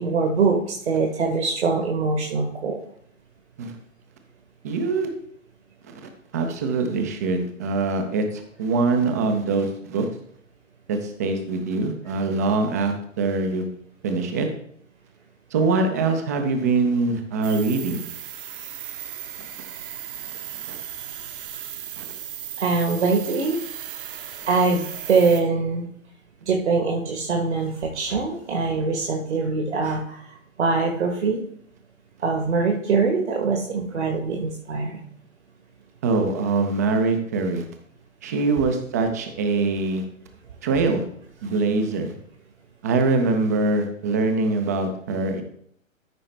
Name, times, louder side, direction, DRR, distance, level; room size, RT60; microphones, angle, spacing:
voice 1, 0.0-2.8 22.6-23.6 24.5-25.9 26.4-30.3 30.6-31.4 32.2-35.0, right 4 dB, 55° right, 2 dB, 1.4 m, -23 dB
voice 2, 4.6-5.1 5.9-10.1 10.9-13.7 14.0-14.5 15.5-18.0 20.7-20.8 22.0-22.1 36.0-37.7 38.2-40.0 40.6-41.0 41.4-42.1 42.8-45.4, right 3 dB, 15° right, 6 dB, 0.5 m, -23 dB
sound 1, 17.4-25.4, right 10 dB, 40° right, 0.9 m, -36 dB
13.0 x 5.4 x 3.3 m, 0.66 s
figure-of-eight pair, 120°, 40 cm